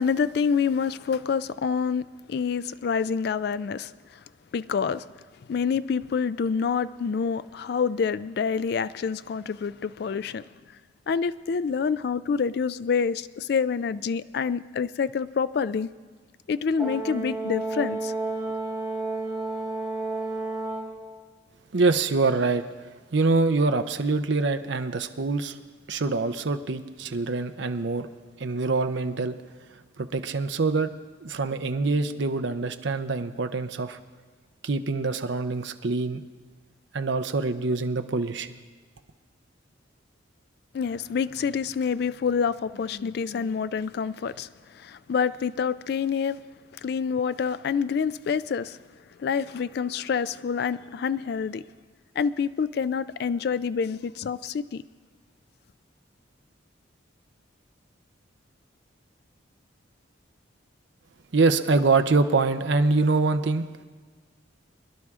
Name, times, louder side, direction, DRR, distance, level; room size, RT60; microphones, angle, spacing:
voice 1, 0.0-4.2 4.5-5.0 5.5-10.4 11.1-15.9 16.5-18.1 40.7-46.4 46.8-48.8 49.2-51.6 52.2-54.8, left 6 dB, 55° left, 0.3 m, -27 dB
Brass instrument, 16.8-21.0, right 3 dB, 5° right, 2.9 m, -31 dB
voice 2, 21.7-22.6 23.1-25.6 25.9-28.1 28.4-29.4 29.7-30.9 31.2-34.0 34.6-36.2 36.9-38.5 61.3-63.6, right 3 dB, 65° right, 0.6 m, -25 dB
23.5 x 11.0 x 3.6 m
head